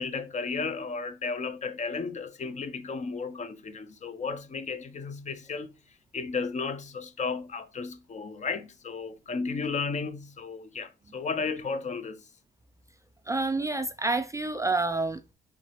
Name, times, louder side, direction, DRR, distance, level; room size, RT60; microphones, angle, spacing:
voice 1, 0.0-5.7 6.1-12.2, left 4 dB, 35° left, 0.5 m, -34 dB
voice 2, 13.3-15.3, right 3 dB, 15° right, 0.3 m, -28 dB
4.5 x 3.2 x 2.9 m
cardioid pair, 90°, 20 cm